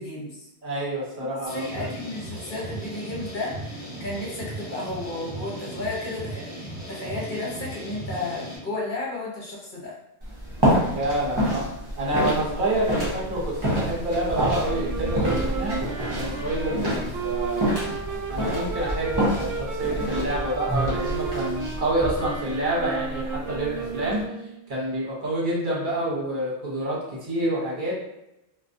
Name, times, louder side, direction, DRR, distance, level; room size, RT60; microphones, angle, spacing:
voice 1, 0.0-0.5 1.3-9.9, left 2 dB, 50° left, -5 dB, 0.9 m, -33 dB
voice 2, 0.6-1.9 10.9-11.7 12.0-15.8 16.2-17.6 18.3-24.2 24.7-27.9, right 1 dB, 50° right, -6 dB, 1.1 m, -27 dB
sound 1, 1.5-8.6, right 1 dB, 25° left, 1.0 m, -37 dB
sound 2, 10.2-24.2, equal, 25° right, 0.7 m, -28 dB
sound 3, 14.6-24.6, right 6 dB, 80° right, 0.8 m, -33 dB
2.3 x 2.2 x 2.5 m, 0.87 s
omnidirectional pair, 1.1 m